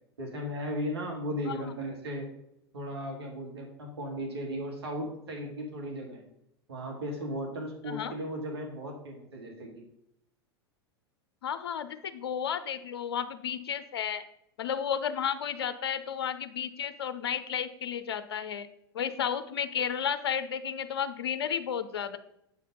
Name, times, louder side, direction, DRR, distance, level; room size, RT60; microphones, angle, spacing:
voice 1, 0.2-2.3 2.7-6.2 6.7-9.8, equal, 80° right, 1 dB, 2.0 m, -36 dB
voice 2, 11.4-14.2 14.6-18.7 18.9-22.2, left 8 dB, 70° left, 11 dB, 0.6 m, -32 dB
7.9 x 5.0 x 5.3 m, 0.79 s
figure-of-eight pair, 90°, 13 cm